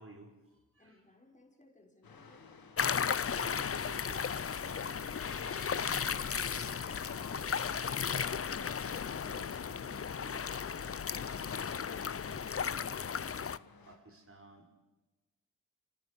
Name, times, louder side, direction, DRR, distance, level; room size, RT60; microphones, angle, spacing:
voice 1, 0.0-1.0 3.3-4.3 4.6-5.1 5.3-12.5 12.7-12.9 13.1-13.5 13.8-14.7, right 2 dB, 40° right, 3 dB, 5.2 m, -55 dB
voice 2, 0.8-2.5, left 2 dB, 20° left, 0 dB, 5.8 m, -63 dB
sound 1, 2.0-14.0, left 4 dB, 85° left, 2.1 m, -56 dB
sound 2, 2.8-13.6, left 7 dB, 40° left, 0.6 m, -35 dB
sound 3, 3.3-9.8, left 8 dB, 65° left, 1.0 m, -50 dB
26.5 x 18.0 x 6.9 m, 1.1 s
cardioid pair, 45°, 35 cm